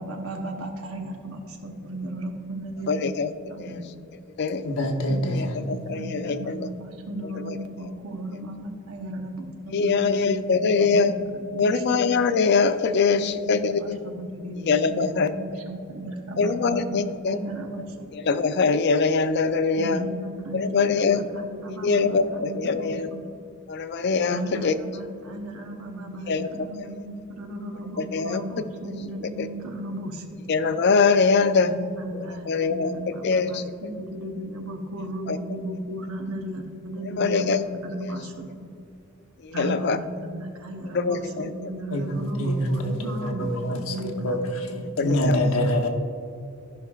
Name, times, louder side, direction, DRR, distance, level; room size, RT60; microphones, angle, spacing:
voice 1, 0.0-3.1 3.5-3.9 5.1-12.0 13.1-18.1 19.8-23.2 24.3-30.5 31.6-38.7 39.5-44.4 44.7-45.1, right 1 dB, 85° right, 3 dB, 1.0 m, -35 dB
voice 2, 2.9-3.3 3.6-3.8 4.4-4.6 5.3-6.7 7.4-7.6 9.7-11.1 11.6-14.0 14.7-15.3 16.4-17.4 18.1-20.0 20.5-21.2 21.7-23.1 23.7-24.7 26.3-26.5 28.0-28.4 29.4-29.5 30.5-31.7 32.5-32.9 33.2-33.6 35.3-35.4 37.2-37.6 38.0-38.1 39.4-40.0 40.9-41.5 45.0-45.4, left 4 dB, 55° left, 11 dB, 0.4 m, -23 dB
voice 3, 4.6-5.5 41.9-43.9 44.2-44.4 45.0-45.9, equal, 90° left, 1 dB, 1.0 m, -25 dB
14.0 x 5.8 x 2.4 m, 2.5 s
head